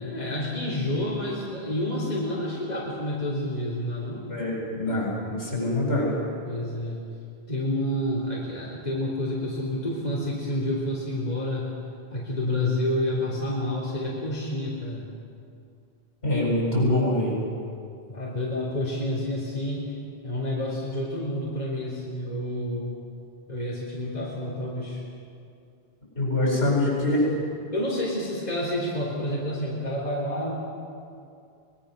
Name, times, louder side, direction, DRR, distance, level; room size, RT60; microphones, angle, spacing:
voice 1, 0.0-4.3 6.4-7.0 7.5-11.7 12.1-15.1 18.1-23.0 23.5-25.0 27.3-27.4 27.7-30.5, left 1 dB, 40° left, -6 dB, 3.6 m, -29 dB
voice 2, 4.3-6.1 16.2-17.4 26.2-27.2, left 1 dB, 75° left, -4 dB, 7.7 m, -24 dB
24.0 x 20.5 x 6.6 m, 2.5 s
omnidirectional pair, 1.1 m